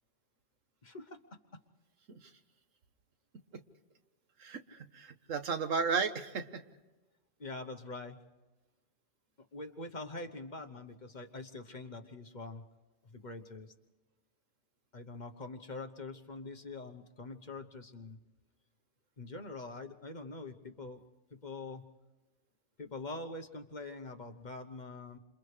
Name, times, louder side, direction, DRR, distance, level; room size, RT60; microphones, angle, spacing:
voice 1, 0.8-1.2 7.4-8.2 9.5-12.6 13.0-13.7 14.9-18.2 19.2-21.0 21.3-21.8 22.8-25.2, left 3 dB, 40° left, 6 dB, 1.1 m, -44 dB
voice 2, 4.4-6.6, right 5 dB, 90° right, 8 dB, 1.5 m, -34 dB
29.5 x 27.5 x 3.3 m, 1.2 s
omnidirectional pair, 1.3 m